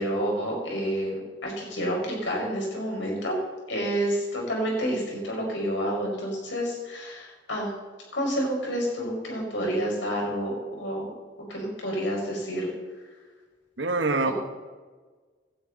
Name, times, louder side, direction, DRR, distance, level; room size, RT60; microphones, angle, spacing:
voice 1, 0.0-3.3 3.7-7.7 8.1-11.1 11.5-12.7, equal, 85° left, -1 dB, 5.3 m, -29 dB
voice 2, 13.8-14.3, right 3 dB, 80° right, 6 dB, 1.4 m, -24 dB
17.5 x 12.0 x 4.1 m, 1.4 s
head